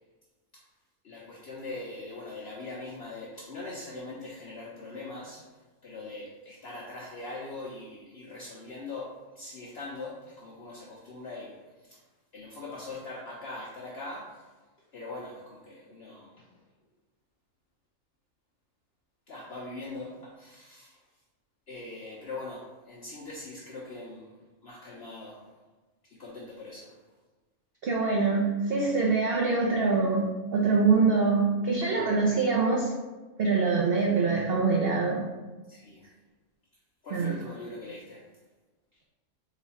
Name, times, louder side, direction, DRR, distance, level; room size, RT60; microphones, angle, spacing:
voice 1, 1.0-5.4 5.8-11.6 11.8-12.0 12.3-14.5 14.9-16.5 19.3-21.0 21.7-24.3 24.6-25.4 26.0-26.9 35.7-36.0 37.0-38.2, left 2 dB, 55° left, -4 dB, 0.8 m, -41 dB
voice 2, 27.8-32.9 33.4-35.2 37.1-37.3, right 4 dB, 65° right, -1 dB, 0.6 m, -24 dB
3.9 x 2.4 x 4.0 m, 1.2 s
omnidirectional pair, 1.5 m